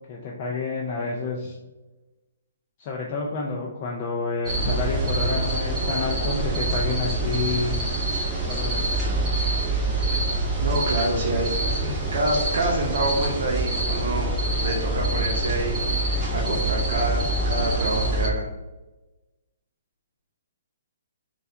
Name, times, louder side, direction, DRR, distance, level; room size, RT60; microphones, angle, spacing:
voice 1, 0.1-1.6 2.8-7.8 8.5-8.9, left 4 dB, 30° left, -1 dB, 0.4 m, -29 dB
sound 1, 4.4-18.3, right 2 dB, 15° right, 0.7 m, -25 dB
voice 2, 10.6-11.5 11.8-18.5, right 1 dB, 70° right, -2 dB, 0.7 m, -27 dB
4.2 x 2.3 x 2.6 m, 1.1 s
hypercardioid pair, 160°, 0 cm